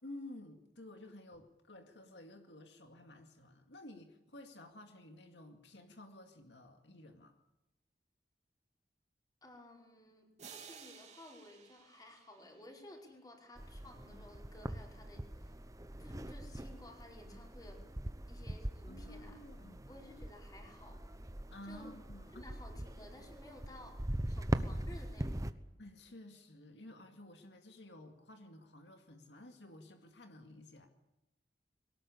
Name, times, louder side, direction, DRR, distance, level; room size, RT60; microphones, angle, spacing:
voice 1, 0.0-7.4 18.9-19.9 21.5-22.4 25.8-30.9, left 1 dB, 80° left, 5 dB, 2.3 m, -53 dB
voice 2, 9.4-15.6 16.0-17.8 18.3-19.4 19.9-21.1 21.6-21.9 22.3-25.5, left 1 dB, 20° left, 0 dB, 5.2 m, -55 dB
sound 1, 10.4-13.1, right 6 dB, 40° right, 2.9 m, -55 dB
sound 2, 13.6-25.5, right 1 dB, 20° right, 1.0 m, -42 dB
22.5 x 19.0 x 8.5 m, 0.98 s
head